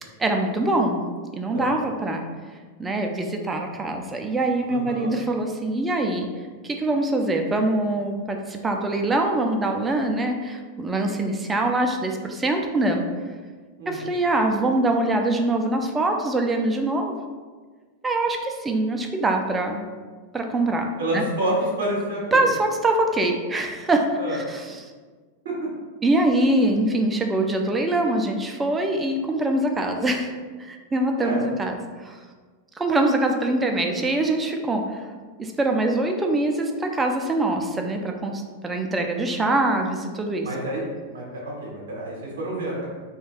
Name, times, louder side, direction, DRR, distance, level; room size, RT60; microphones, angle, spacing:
voice 1, 0.2-1.0 1.3-2.2 2.8-6.3 6.6-13.1 13.9-17.1 18.0-19.8 20.3-21.2 22.3-24.8 26.0-30.3 30.6-32.2 32.8-35.0 35.4-40.5, right 2 dB, 15° right, 3 dB, 0.3 m, -24 dB
voice 2, 4.7-5.1 13.8-14.0 21.0-22.4 24.2-24.4 25.4-25.5 31.2-31.4 40.4-42.9, right 1 dB, 65° right, -4 dB, 0.7 m, -28 dB
2.3 x 2.3 x 3.3 m, 1.4 s
figure-of-eight pair, 90°, 0 cm